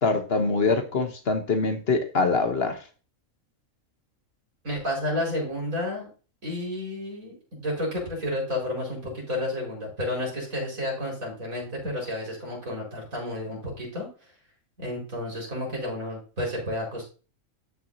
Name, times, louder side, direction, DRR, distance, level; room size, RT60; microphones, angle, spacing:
voice 1, 0.0-2.8, left 3 dB, 50° left, 1.2 m, -24 dB
voice 2, 4.6-6.1 6.4-14.1 14.8-17.1, left 1 dB, 85° right, 5.3 m, -31 dB
13.0 x 6.0 x 2.7 m
omnidirectional pair, 1.4 m